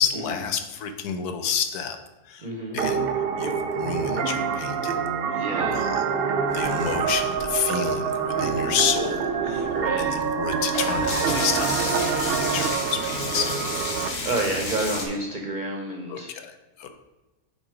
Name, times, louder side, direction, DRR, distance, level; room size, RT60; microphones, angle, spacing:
voice 1, 0.0-2.0 2.2-2.5 2.7-3.1 3.4-5.0 5.3-5.4 5.7-6.0 6.5-13.9 16.1-16.9, left 7 dB, 80° left, 7 dB, 1.2 m, -29 dB
voice 2, 2.4-2.8 5.4-5.8 9.7-10.1 14.2-16.3, right 2 dB, 45° right, 1 dB, 0.7 m, -29 dB
sound 1, 2.8-14.1, right 6 dB, 85° right, 0.5 m, -26 dB
sound 2, 6.5-7.8 8.5-8.6 8.8-15.1, left 2 dB, 45° left, 1.3 m, -32 dB
6.7 x 4.0 x 4.9 m, 1.1 s
omnidirectional pair, 1.6 m